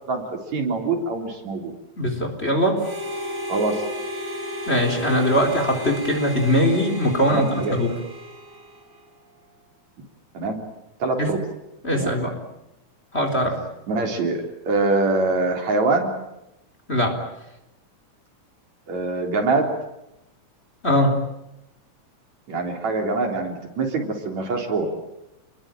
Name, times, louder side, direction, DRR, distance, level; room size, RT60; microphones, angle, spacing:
voice 1, 0.1-1.7 3.5-3.8 7.3-7.8 10.3-10.6 11.0-11.4 11.9-12.2 13.9-16.1 18.9-19.7 22.5-24.9, right 3 dB, 65° right, 3 dB, 4.9 m, -24 dB
voice 2, 2.0-2.8 4.7-7.9 11.2-11.3 11.8-12.4 13.1-13.6 16.9-17.2 20.8-21.1, equal, 20° left, 4 dB, 4.1 m, -21 dB
Harmonica, 2.8-9.1, equal, 20° right, 5.7 m, -34 dB
29.0 x 21.5 x 9.0 m, 0.89 s
omnidirectional pair, 3.5 m